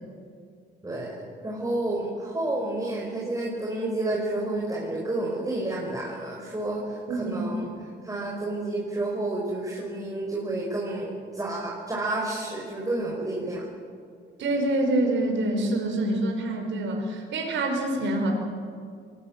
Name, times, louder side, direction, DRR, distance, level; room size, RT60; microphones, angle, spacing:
voice 1, 1.4-7.7 8.0-13.7, right 2 dB, 15° right, -3 dB, 5.6 m, -30 dB
voice 2, 14.4-18.3, right 1 dB, 70° right, 2 dB, 5.1 m, -26 dB
23.5 x 19.0 x 9.0 m, 2.2 s
cardioid pair, 90°, 20 cm